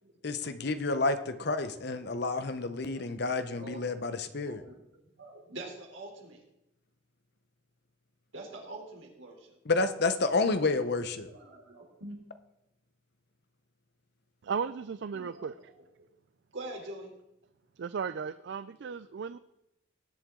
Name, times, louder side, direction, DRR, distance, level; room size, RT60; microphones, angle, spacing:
voice 1, 0.2-4.6 9.7-11.3, left 3 dB, 55° left, 10 dB, 0.8 m, -30 dB
voice 2, 1.6-2.0 2.8-4.0 4.4-6.4 8.3-9.6 11.3-12.2 15.1-15.5 16.5-17.1, right 2 dB, 75° right, -1 dB, 3.4 m, -45 dB
voice 3, 14.4-15.5 17.8-19.4, right 6 dB, 60° right, 13 dB, 0.4 m, -35 dB
19.0 x 7.8 x 3.8 m, 0.88 s
head